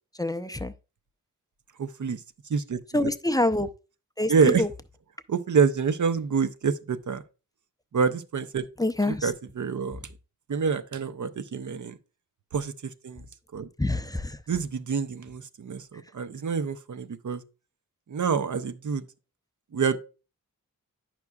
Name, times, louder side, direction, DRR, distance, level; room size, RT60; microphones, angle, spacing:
voice 1, 0.2-0.7 2.9-3.7 4.2-4.7 8.8-9.3 13.8-14.4, left 1 dB, 10° left, 0.5 m, -26 dB
voice 2, 1.8-2.2 2.5-3.1 4.3-4.6 5.3-7.2 7.9-8.7 9.1-10.0 10.5-12.0 12.5-13.2 13.5-13.7 14.5-17.4 18.1-19.1 19.7-20.0, right 6 dB, 60° right, 0.6 m, -27 dB
9.5 x 5.9 x 2.3 m
wide cardioid pair, 65°, 35 cm